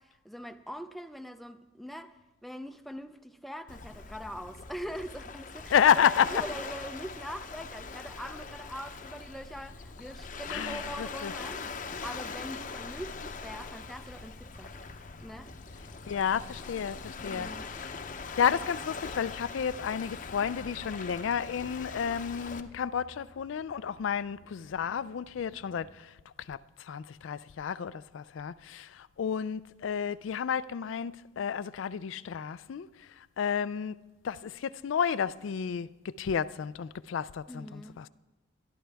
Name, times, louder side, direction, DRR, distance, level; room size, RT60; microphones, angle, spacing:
voice 1, 0.0-14.8 15.2-15.5 17.2-17.7 37.5-38.0, equal, ahead, 0.4 m, -42 dB
Waves surf, 3.7-22.6, left 4 dB, 40° left, 0.7 m, -42 dB
voice 2, 5.7-6.3 10.5-11.3 16.1-17.5 17.8-17.9 18.4-26.1 26.5-26.6 26.9-32.9 33.4-34.0 34.2-38.1, left 7 dB, 75° left, 0.4 m, -31 dB
sound 1, 11.7-25.9, equal, 55° right, 2.0 m, -60 dB
22.0 x 12.5 x 3.4 m
head